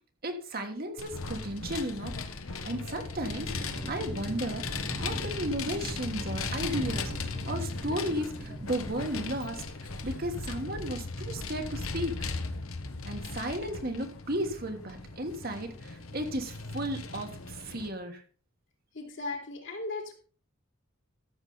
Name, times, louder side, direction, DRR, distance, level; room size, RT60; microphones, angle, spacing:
voice 1, 0.2-2.1 2.5-4.7 5.0-9.6 10.0-12.1 13.0-18.2, right 1 dB, 45° right, 5 dB, 1.4 m, -34 dB
Vehicle, 1.0-17.9, left 3 dB, 75° left, 1.3 m, -37 dB
sound 1, 3.2-8.6, right 1 dB, 25° right, 0.6 m, -42 dB
voice 2, 18.9-20.1, left 3 dB, 60° left, 2 dB, 2.8 m, -36 dB
14.0 x 7.3 x 4.0 m, 0.40 s
head